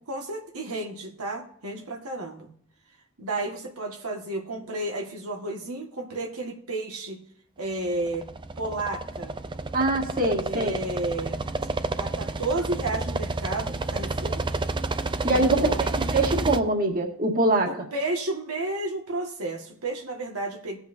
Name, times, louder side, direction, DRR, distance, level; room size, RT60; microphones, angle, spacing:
voice 1, 0.1-2.5 3.2-7.2 7.6-8.3 8.6-9.3 10.4-11.4 12.0-14.4 15.3-16.0 17.6-20.8, right 2 dB, 85° right, 1 dB, 1.7 m, -32 dB
sound 1, 7.9-16.6, right 3 dB, 20° right, 0.4 m, -30 dB
voice 2, 9.7-10.7 15.2-17.7, right 2 dB, 40° right, 1 dB, 2.0 m, -23 dB
19.5 x 7.9 x 2.7 m, 0.65 s
head